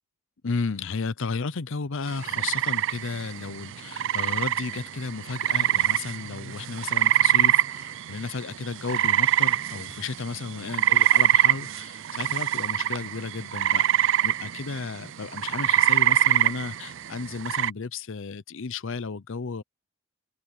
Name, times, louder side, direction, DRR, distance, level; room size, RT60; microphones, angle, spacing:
voice 1, 0.4-19.6, left 4 dB, 65° left, 0.7 m, -33 dB
sound 1, 2.1-17.7, right 11 dB, 60° right, 0.5 m, -24 dB
open air
head